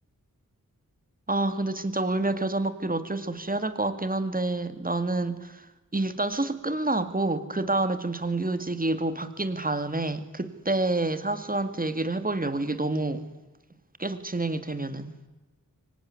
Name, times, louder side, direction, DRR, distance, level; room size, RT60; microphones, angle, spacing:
voice 1, 1.3-5.6 5.9-13.2 14.0-15.2, right 2 dB, 25° right, 11 dB, 2.2 m, -28 dB
25.5 x 23.5 x 9.7 m, 1.1 s
wide cardioid pair, 65°, 34 cm